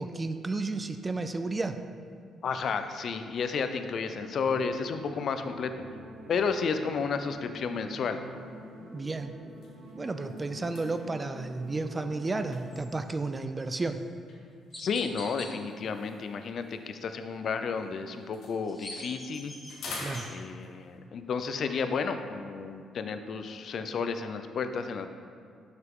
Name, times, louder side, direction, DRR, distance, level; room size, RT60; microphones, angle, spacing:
voice 1, 0.0-1.8 8.9-9.3 10.0-14.0 20.0-20.3, right 3 dB, 25° right, 8 dB, 0.3 m, -32 dB
voice 2, 2.4-5.7 6.3-8.2 14.8-19.5 20.3-25.1, left 5 dB, 60° left, 8 dB, 0.4 m, -32 dB
sound 1, 4.0-12.8, right 1 dB, 85° right, 0.9 m, -47 dB
sound 2, 8.3-8.6 9.0-9.1 9.5-13.4 14.3-17.8 18.1-21.0, left 2 dB, 75° left, 1.2 m, -47 dB
Chirp tweet, 13.8-14.0 14.7-15.5 18.4-20.3, left 1 dB, 10° left, 1.5 m, -43 dB
5.7 x 5.6 x 3.6 m, 2.3 s
cardioid pair, 90°, 0 cm